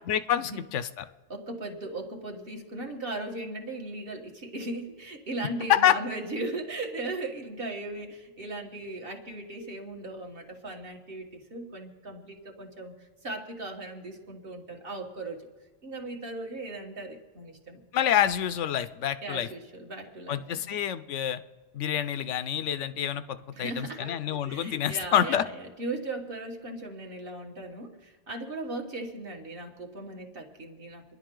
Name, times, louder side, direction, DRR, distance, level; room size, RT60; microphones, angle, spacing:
voice 1, 0.1-1.0 5.7-6.0 17.9-19.5 20.3-21.4 21.7-25.4, left 10 dB, 85° left, 13 dB, 1.0 m, -27 dB
voice 2, 1.3-15.4 15.8-17.8 19.2-20.8 23.5-31.2, right 2 dB, 50° right, 1 dB, 1.8 m, -38 dB
27.0 x 11.0 x 3.8 m, 1.3 s
omnidirectional pair, 1.2 m